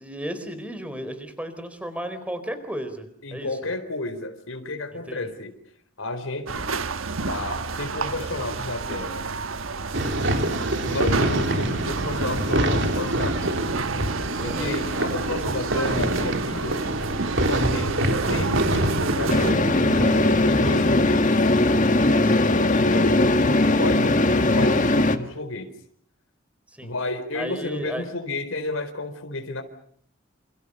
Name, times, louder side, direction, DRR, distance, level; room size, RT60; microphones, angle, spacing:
voice 1, 0.0-3.5 4.9-5.3 10.0-10.2 14.4-14.8 22.2-22.5 26.7-26.9 27.3-28.1, equal, 5° right, 10 dB, 4.3 m, -34 dB
voice 2, 3.2-5.5 6.0-6.7 7.3-9.3 10.8-13.5 14.4-17.0 17.5-19.7 20.5-21.3 22.7-25.7 26.8-29.6, left 2 dB, 85° left, 7 dB, 4.3 m, -32 dB
sound 1, 6.5-19.5, right 4 dB, 80° right, 1.3 m, -30 dB
sound 2, 9.9-21.1, right 1 dB, 60° right, 3.4 m, -26 dB
sound 3, 19.3-25.2, left 2 dB, 40° left, 1.8 m, -19 dB
28.5 x 28.0 x 6.8 m, 0.62 s
head